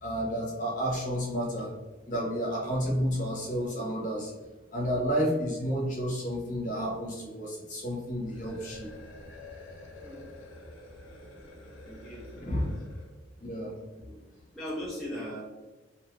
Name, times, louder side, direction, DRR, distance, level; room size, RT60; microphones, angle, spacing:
voice 1, 0.0-1.7 2.1-4.3 4.7-8.9 12.4-12.7 13.4-13.7, equal, 40° left, -4 dB, 0.9 m, -31 dB
sound 1, 8.2-13.2, left 2 dB, 85° left, 0.7 m, -48 dB
voice 2, 11.8-12.7 14.0-14.1 14.5-15.4, equal, ahead, -7 dB, 0.5 m, -39 dB
2.7 x 2.3 x 3.1 m, 1.2 s
head